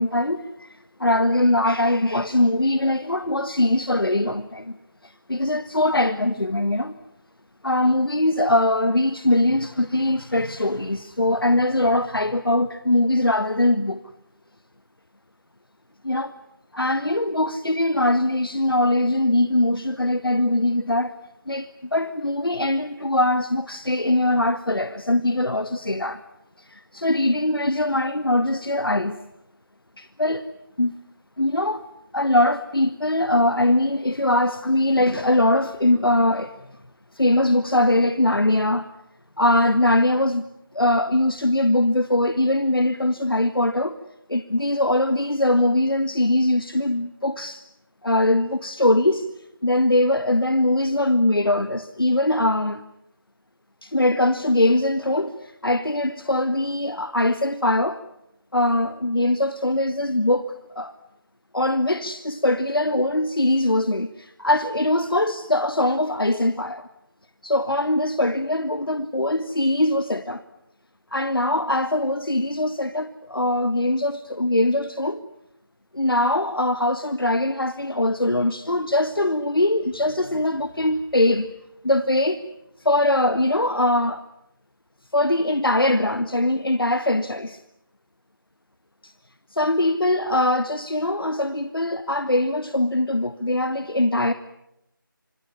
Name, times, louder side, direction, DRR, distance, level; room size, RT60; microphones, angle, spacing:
voice 1, 0.0-4.7 5.0-6.9 7.6-14.0 16.0-16.3 16.7-21.1 21.5-26.2 26.6-29.2 30.0-30.4 30.8-30.9 31.4-31.9 32.1-36.5 37.1-38.9 39.4-40.5 40.7-44.0 44.3-47.6 48.0-49.3 49.6-52.8 53.8-58.0 58.5-60.9 61.5-66.9 67.4-70.4 71.1-75.2 75.9-81.5 81.8-82.4 82.8-84.2 85.1-87.6 89.0-89.1 89.5-94.3, left 1 dB, 90° left, 1.6 m, -22 dB
26.5 x 21.0 x 9.9 m
figure-of-eight pair, 170°, 12 cm